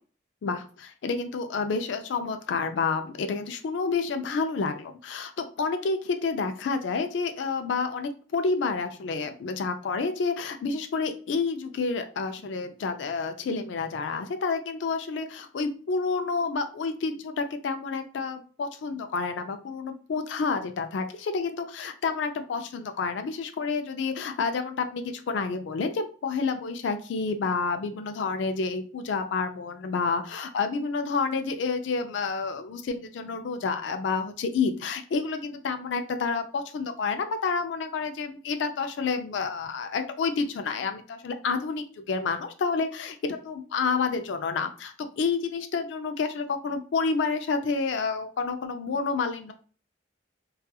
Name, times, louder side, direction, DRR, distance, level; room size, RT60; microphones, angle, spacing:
voice 1, 0.4-43.2 43.5-49.5, left 4 dB, 75° left, 7 dB, 0.4 m, -29 dB
2.7 x 2.3 x 2.2 m, 0.40 s
head